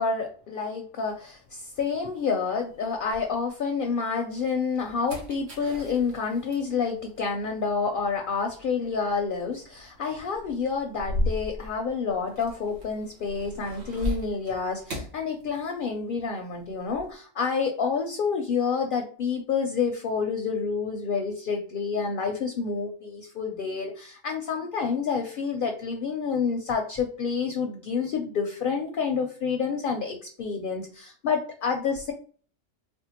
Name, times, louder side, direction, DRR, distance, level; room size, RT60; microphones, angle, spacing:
voice 1, 0.0-32.1, left 5 dB, 60° left, 4 dB, 0.6 m, -28 dB
sound 1, 1.1-3.8 4.3-16.1 16.3-17.1, left 1 dB, 90° right, 1.4 m, -38 dB
4.3 x 2.2 x 2.8 m, 0.43 s
omnidirectional pair, 1.2 m